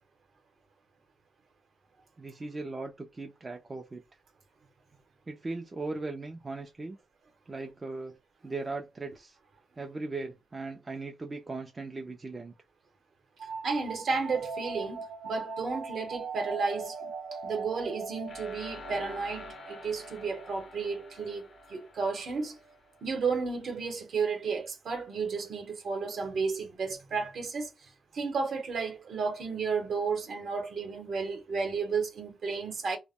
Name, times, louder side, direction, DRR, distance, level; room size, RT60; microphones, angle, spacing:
voice 1, 2.2-4.0 5.3-7.0 7.5-8.2 8.4-9.4 9.8-12.5, right 3 dB, 20° right, 0.3 m, -38 dB
sound 1, 13.4-22.8, right 4 dB, 80° right, 0.5 m, -41 dB
voice 2, 13.6-17.1 17.4-22.6 23.0-27.7 28.1-33.0, right 4 dB, 55° right, 0.8 m, -32 dB
sound 2, 18.3-23.2, left 4 dB, 50° left, 0.5 m, -49 dB
2.1 x 2.0 x 3.4 m
wide cardioid pair, 145°, 0 cm